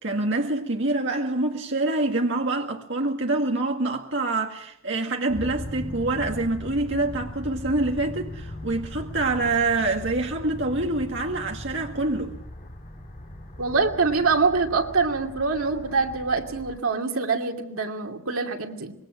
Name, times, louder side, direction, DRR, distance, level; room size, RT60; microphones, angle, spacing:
voice 1, 0.0-12.3, right 2 dB, 55° right, 2.0 m, -26 dB
sound 1, 5.3-16.8, left 1 dB, 35° left, 2.3 m, -39 dB
voice 2, 13.6-18.9, right 4 dB, 85° right, 2.6 m, -24 dB
26.0 x 21.5 x 6.3 m
head